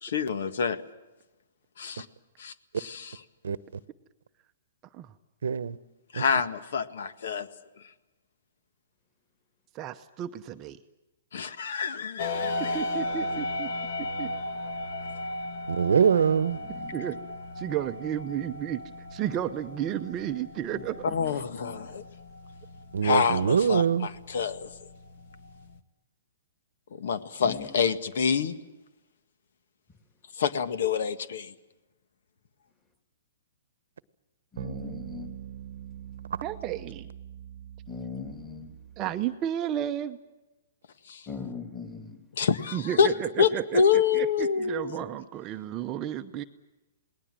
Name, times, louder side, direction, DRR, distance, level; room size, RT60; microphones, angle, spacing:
voice 1, 0.0-0.8 1.8-2.1 2.4-3.2 6.1-7.5 11.3-12.7 21.0-22.0 23.0-24.7 26.9-28.5 30.4-31.5 41.1-41.3 42.4-43.1 43.4-45.2, left 6 dB, 65° left, 1.7 m, -27 dB
voice 2, 5.4-5.8 6.2-6.3 15.7-16.6 22.9-24.1, right 7 dB, 85° right, 1.1 m, -23 dB
voice 3, 9.7-10.8 12.6-13.7 14.0-14.3 16.9-17.2 17.6-18.8 19.1-21.0 36.4-37.1 39.0-40.2 42.7-46.4, right 11 dB, 20° right, 0.8 m, -32 dB
sound 1, 12.2-25.8, left 1 dB, 45° left, 1.6 m, -36 dB
voice 4, 16.6-16.9 20.7-21.8 27.4-27.7 34.5-35.3 37.9-38.7 41.3-42.2, left 6 dB, 10° left, 2.6 m, -40 dB
sound 2, 34.6-39.3, right 10 dB, 45° right, 1.1 m, -42 dB
28.0 x 20.0 x 7.7 m
hypercardioid pair, 165°, 0 cm